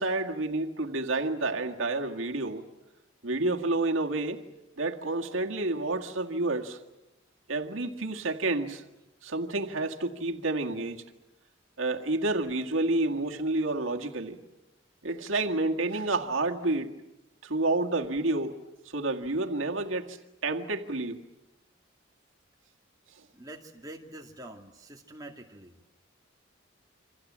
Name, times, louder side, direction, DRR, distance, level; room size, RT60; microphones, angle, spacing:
voice 1, 0.0-2.7 3.2-4.4 4.8-6.8 7.5-8.8 9.2-11.0 11.8-14.4 15.0-16.9 17.4-18.6 18.9-20.2 20.4-21.2, right 2 dB, 90° right, 3 dB, 1.9 m, -29 dB
voice 2, 23.3-25.7, right 1 dB, 20° right, 1 dB, 2.1 m, -46 dB
28.5 x 25.5 x 7.4 m, 0.95 s
head